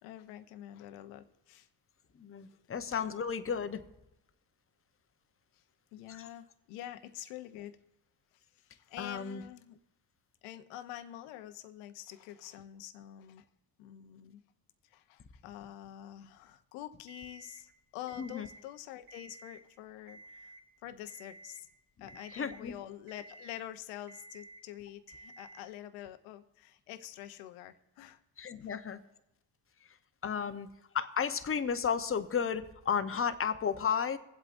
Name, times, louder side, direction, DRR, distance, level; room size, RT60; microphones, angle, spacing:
voice 1, 0.0-1.7 2.4-2.6 5.5-5.6 5.9-7.8 8.3-9.8 10.4-13.5 13.8-14.4 14.8-20.6 20.8-21.7 22.0-28.2 28.6-28.7 30.3-30.6, left 13 dB, 90° left, 10 dB, 0.8 m, -47 dB
voice 2, 2.2-3.8 6.1-6.2 9.0-9.4 18.2-18.5 22.3-22.7 28.4-29.0 30.2-30.7 30.9-34.2, left 7 dB, 25° left, 10 dB, 0.8 m, -33 dB
Alarm, 17.1-17.6 18.1-18.6 19.0-19.6 20.1-20.6 21.1-21.6 22.1-22.6 23.1-23.6 24.1-24.6 25.1-25.6, right 2 dB, 50° right, 2.4 m, -53 dB
24.0 x 8.0 x 2.6 m, 0.90 s
supercardioid pair, 75°, 49 cm